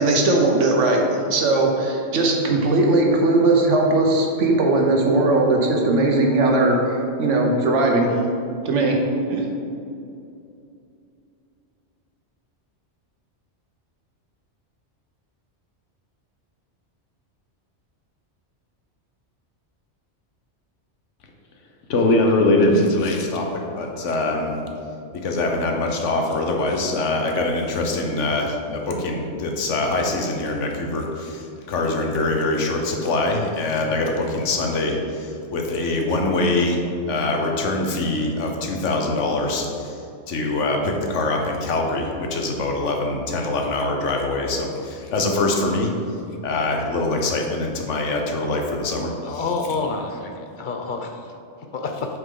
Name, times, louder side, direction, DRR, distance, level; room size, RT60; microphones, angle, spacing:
voice 1, 0.0-8.1 8.6-9.0 9.3-9.4, right 2 dB, 90° right, 1 dB, 1.3 m, -19 dB
voice 2, 21.9-23.5 23.8-24.5 25.1-36.8 37.1-40.0 40.3-45.9 46.4-49.5, left 2 dB, 85° left, 2 dB, 1.2 m, -23 dB
voice 3, 49.2-51.1 51.7-52.1, left 4 dB, 55° left, 3 dB, 0.6 m, -28 dB
7.9 x 4.7 x 3.8 m, 2.6 s
omnidirectional pair, 1.2 m